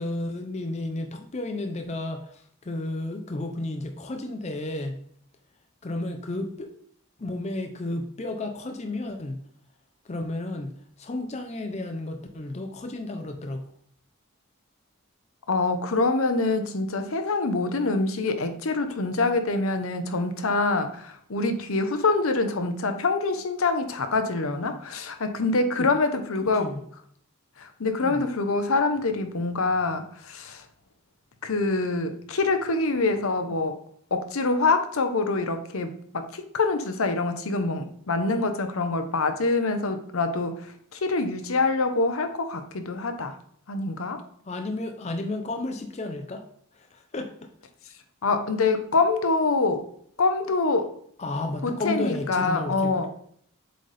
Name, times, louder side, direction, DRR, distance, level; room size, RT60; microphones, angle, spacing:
voice 1, 0.0-4.9 5.8-6.7 7.2-9.4 10.1-10.7 11.0-13.6 25.8-25.9 26.6-26.8 28.0-28.2 44.5-46.4 46.8-47.3 51.2-53.1, left 2 dB, 30° left, 5 dB, 0.5 m, -32 dB
voice 2, 15.5-26.7 27.6-30.6 31.4-33.8 34.1-43.3 43.7-44.2 48.2-49.9 50.2-50.9 51.6-53.1, left 3 dB, 75° left, 7 dB, 0.8 m, -25 dB
7.6 x 4.1 x 3.3 m, 0.64 s
head